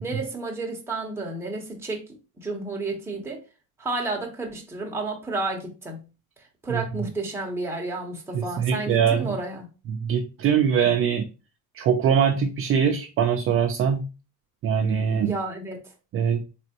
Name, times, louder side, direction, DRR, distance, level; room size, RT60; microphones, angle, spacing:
voice 1, 0.0-2.0 2.4-3.4 3.8-6.1 6.6-9.7 15.2-15.9, right 3 dB, 5° right, 0.8 m, -31 dB
voice 2, 8.3-9.3 9.9-11.3 11.7-14.0 14.6-15.3 16.1-16.4, right 7 dB, 40° right, 0.4 m, -22 dB
4.1 x 3.4 x 2.8 m
cardioid pair, 170°, 36 cm